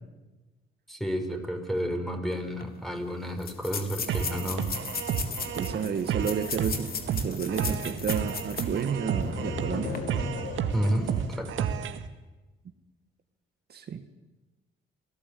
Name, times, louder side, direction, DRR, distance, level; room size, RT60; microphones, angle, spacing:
voice 1, 0.9-4.7 10.7-11.7, equal, ahead, 4 dB, 5.9 m, -31 dB
sound 1, 2.3-2.4 2.6-2.7 3.4-8.8 9.2-9.3 9.8-10.0, left 6 dB, 50° left, 3.5 m, -36 dB
sound 2, 3.8-11.3, left 3 dB, 65° left, 5.4 m, -41 dB
sound 3, 4.1-12.1, right 8 dB, 80° right, 1.9 m, -32 dB
voice 2, 5.5-10.0 13.7-14.0, right 7 dB, 55° right, 7 dB, 1.8 m, -31 dB
29.0 x 18.5 x 8.6 m, 1.1 s
cardioid pair, 90°, 20 cm